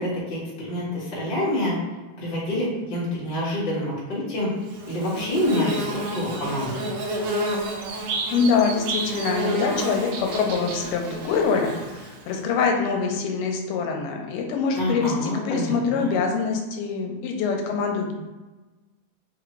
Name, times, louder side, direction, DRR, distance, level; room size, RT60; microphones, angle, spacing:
voice 1, 0.0-1.8 2.2-4.5 4.9-6.8 14.7-16.2, left 1 dB, 40° left, -8 dB, 0.7 m, -27 dB
Bird / Buzz, 4.7-12.4, right 1 dB, 80° right, 1.5 m, -30 dB
voice 2, 8.3-18.1, left 5 dB, 90° left, 2 dB, 2.2 m, -24 dB
5.2 x 2.5 x 3.2 m, 1.2 s
omnidirectional pair, 3.7 m